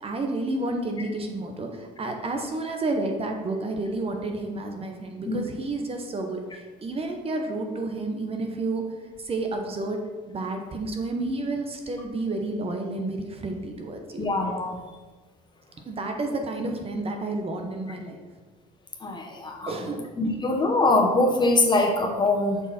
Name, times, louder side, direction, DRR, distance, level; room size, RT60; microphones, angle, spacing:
voice 1, 0.0-8.9 9.2-10.0 10.3-14.3 15.8-18.2 19.7-20.4, right 2 dB, 35° right, 3 dB, 1.0 m, -30 dB
voice 2, 14.2-14.8 19.0-19.7 20.2-22.6, left 2 dB, 25° left, 1 dB, 1.3 m, -23 dB
7.0 x 6.1 x 4.3 m, 1.4 s
cardioid pair, 110°, 17 cm